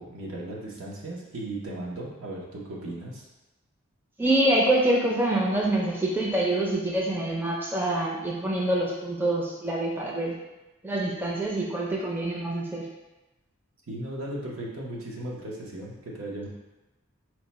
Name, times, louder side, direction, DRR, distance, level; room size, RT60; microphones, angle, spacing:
voice 1, 0.0-3.3 13.9-16.5, right 1 dB, 70° right, -3 dB, 0.9 m, -36 dB
voice 2, 4.2-10.4 10.8-12.8, right 1 dB, 10° right, -3 dB, 0.4 m, -25 dB
4.5 x 2.2 x 4.1 m, 1.0 s
head